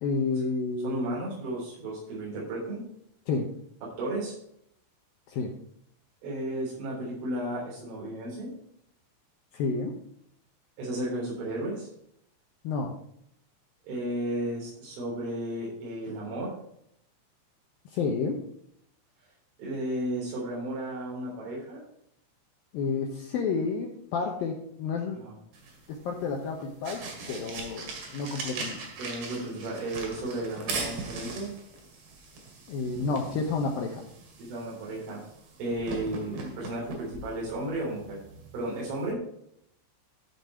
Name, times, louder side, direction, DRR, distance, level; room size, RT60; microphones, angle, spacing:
voice 1, 0.0-1.2 3.3-3.5 5.3-5.5 9.5-10.0 12.6-12.9 17.9-18.4 22.7-25.2 25.9-28.8 32.7-34.0, left 4 dB, 75° left, 1 dB, 2.1 m, -30 dB
voice 2, 0.8-2.8 4.0-4.3 6.2-8.5 10.8-11.9 13.8-16.5 19.6-21.8 25.1-25.4 29.0-31.5 34.4-35.2 35.6-38.2 38.5-39.2, right 1 dB, 85° right, -5 dB, 5.9 m, -33 dB
sound 1, 25.5-39.1, right 3 dB, 60° right, 3.6 m, -40 dB
13.0 x 5.9 x 4.4 m, 0.72 s
omnidirectional pair, 5.3 m